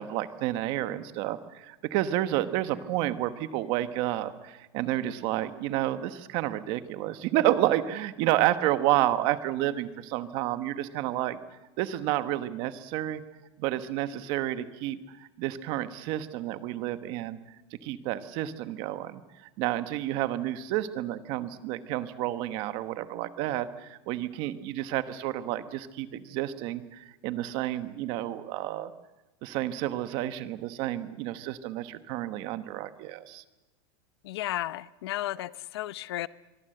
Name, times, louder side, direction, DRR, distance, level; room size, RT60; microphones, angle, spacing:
voice 1, 0.0-11.4 11.8-13.2 13.6-17.4 17.8-28.9 29.4-33.4, right 14 dB, 35° right, 12 dB, 1.2 m, -30 dB
voice 2, 34.2-36.3, left 15 dB, 75° left, 17 dB, 0.8 m, -33 dB
24.5 x 23.0 x 7.8 m, 1.1 s
supercardioid pair, 175°, 13 cm